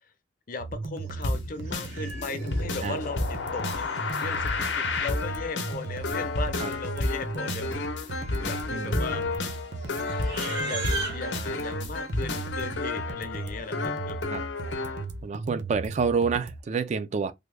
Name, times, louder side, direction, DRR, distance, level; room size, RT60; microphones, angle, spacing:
voice 1, 0.5-3.9 4.2-7.8 8.4-9.3 10.6-10.8 11.1-14.2, left 4 dB, 50° left, 0.6 m, -37 dB
sound 1, 0.6-16.6, right 3 dB, 90° right, 0.6 m, -37 dB
Livestock farm animals working animals, 1.1-1.3 1.6-2.6 3.5-4.8 5.8-5.9 6.1-6.5 6.8-7.1 7.7-11.3, right 2 dB, 65° right, 1.7 m, -38 dB
sound 2, 1.2-15.1, left 3 dB, 85° left, 0.7 m, -31 dB
voice 2, 8.7-9.2 14.3-14.4 15.2-17.3, right 5 dB, 40° right, 0.3 m, -28 dB
3.4 x 2.1 x 3.2 m
head